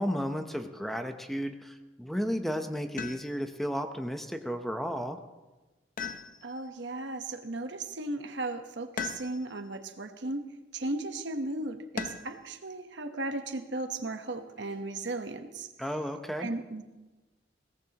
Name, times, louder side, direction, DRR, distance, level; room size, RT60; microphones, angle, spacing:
voice 1, 0.0-5.2 15.8-16.5, equal, ahead, 6 dB, 0.7 m, -33 dB
sound 1, 3.0-3.6 6.0-6.8 9.0-9.7 12.0-12.5 14.2-14.8, left 5 dB, 50° left, 0.8 m, -39 dB
voice 2, 6.4-10.5 10.7-15.7 16.4-16.8, right 2 dB, 70° right, 7 dB, 1.1 m, -36 dB
21.5 x 17.5 x 2.9 m, 1.1 s
head